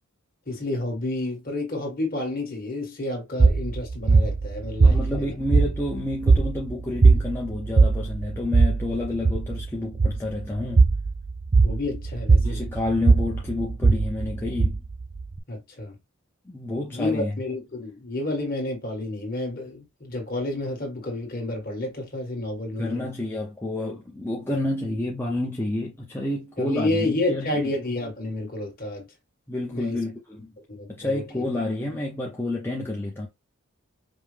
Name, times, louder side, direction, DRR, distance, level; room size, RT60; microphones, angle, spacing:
voice 1, 0.5-5.3 11.6-12.6 15.5-16.0 16.9-23.0 26.6-29.0 29.7-30.0 30.7-31.2, left 2 dB, 40° left, 1.7 m, -30 dB
sound 1, 3.4-15.4, right 4 dB, 35° right, 0.4 m, -20 dB
voice 2, 4.8-10.9 12.4-14.8 16.4-17.4 22.8-27.7 29.5-30.5 30.9-33.3, left 2 dB, 10° left, 0.6 m, -29 dB
5.2 x 2.1 x 3.3 m
head